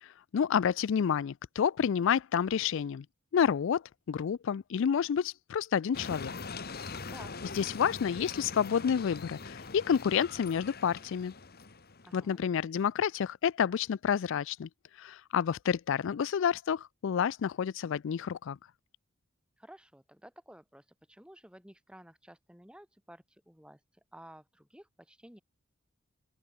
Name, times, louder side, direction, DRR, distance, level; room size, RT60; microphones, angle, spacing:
voice 1, 0.0-3.0 3.3-6.3 7.5-11.3 12.1-14.7 15.0-18.6, left 7 dB, 65° left, 0.4 m, -29 dB
sound 1, 5.9-12.2, left 4 dB, 50° left, 1.5 m, -42 dB
voice 2, 12.0-12.4 19.6-23.8 24.1-25.4, right 1 dB, 5° right, 8.0 m, -53 dB
open air
head